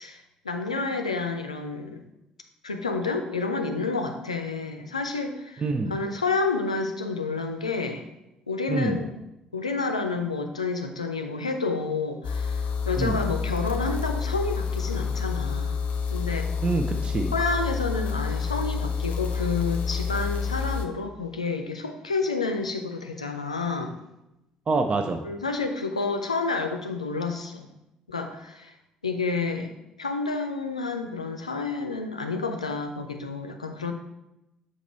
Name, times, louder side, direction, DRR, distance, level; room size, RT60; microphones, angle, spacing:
voice 1, 0.0-2.0 2.6-8.0 8.5-9.1 9.5-15.8 16.1-16.5 17.3-23.9 25.2-27.7 28.1-28.7 29.0-29.7 30.0-33.9, left 4 dB, 85° left, 5 dB, 0.5 m, -29 dB
voice 2, 5.6-5.9 8.7-9.0 13.0-13.2 16.6-17.3 24.7-25.2, right 3 dB, 35° right, 5 dB, 0.6 m, -26 dB
sound 1, 12.2-20.9, left 6 dB, 45° left, 0.8 m, -28 dB
7.1 x 4.3 x 4.3 m, 0.90 s
figure-of-eight pair, 50°, 3 cm